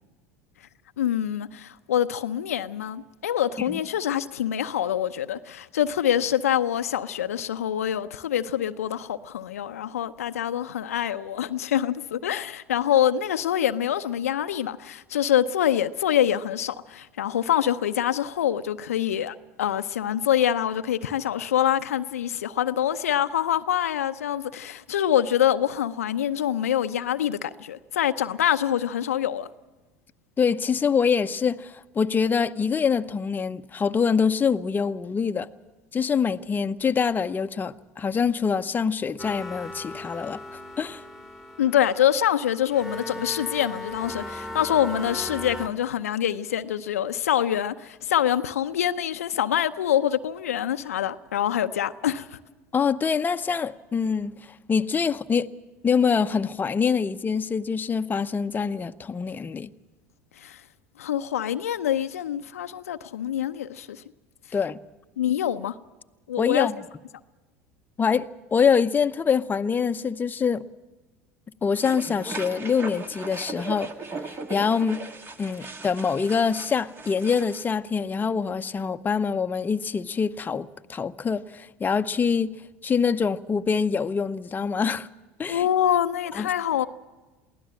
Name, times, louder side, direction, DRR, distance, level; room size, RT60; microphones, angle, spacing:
voice 1, 1.0-29.5 41.6-52.4 60.4-60.6 61.0-64.0 65.2-65.7 66.3-66.7 85.5-86.9, left 10 dB, 80° left, 0.6 m, -25 dB
voice 2, 30.4-35.5 35.9-40.4 40.8-41.0 52.7-55.5 55.8-59.7 64.5-64.8 66.4-66.8 68.0-70.6 71.6-73.9 74.3-75.0 75.4-82.5 82.8-85.1 85.4-85.7 86.3-86.5, left 6 dB, 25° left, 0.8 m, -25 dB
sound 1, 39.2-45.7, left 2 dB, ahead, 1.9 m, -38 dB
sound 2, 71.8-77.7, right 3 dB, 30° right, 1.8 m, -38 dB
23.0 x 16.5 x 7.6 m
hypercardioid pair, 75°, 8 cm